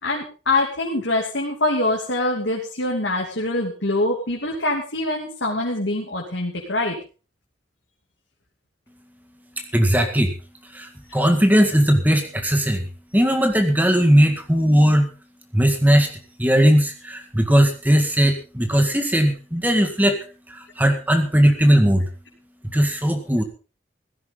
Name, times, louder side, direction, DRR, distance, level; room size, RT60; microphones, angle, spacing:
voice 1, 0.0-7.0 11.1-11.2, left 2 dB, 85° left, -1 dB, 2.9 m, -24 dB
voice 2, 9.7-10.3 10.7-15.1 15.5-16.1 16.4-20.2 20.5-22.1 22.7-23.4, equal, 10° right, 5 dB, 1.9 m, -18 dB
16.0 x 14.5 x 3.9 m, 0.35 s
head